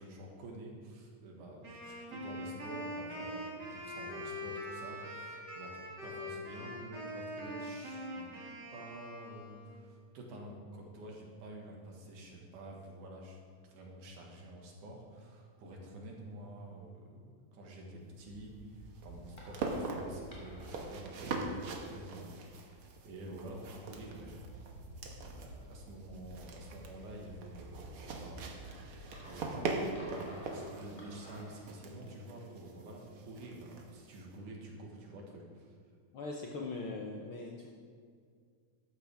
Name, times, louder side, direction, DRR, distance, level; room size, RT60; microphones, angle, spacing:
voice 1, 0.0-8.3 8.7-13.4 13.6-24.5 25.3-28.5 29.2-29.7 30.1-35.8, right 1 dB, 85° right, -1 dB, 3.2 m, -49 dB
Wind instrument woodwind instrument, 1.6-9.8, equal, 35° right, 2.6 m, -43 dB
sound 1, 18.0-34.4, right 3 dB, 55° right, 1.7 m, -42 dB
sound 2, 18.2-31.6, right 1 dB, 20° left, 2.2 m, -52 dB
voice 2, 36.1-37.7, left 3 dB, 70° left, -1 dB, 1.3 m, -41 dB
13.5 x 11.5 x 3.5 m, 2.1 s
omnidirectional pair, 3.5 m